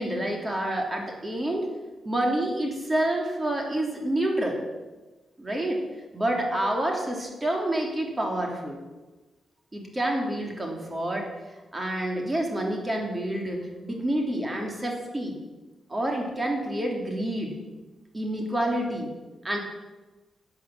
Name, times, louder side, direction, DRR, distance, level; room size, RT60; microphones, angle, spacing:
voice 1, 0.0-1.7 2.0-4.6 5.4-5.8 6.1-8.8 9.7-11.3 11.7-15.4 15.9-17.5 18.1-19.1 19.4-19.6, right 1 dB, 20° right, 1 dB, 3.1 m, -28 dB
11.5 x 9.0 x 7.3 m, 1.2 s
cardioid pair, 75°, 0 cm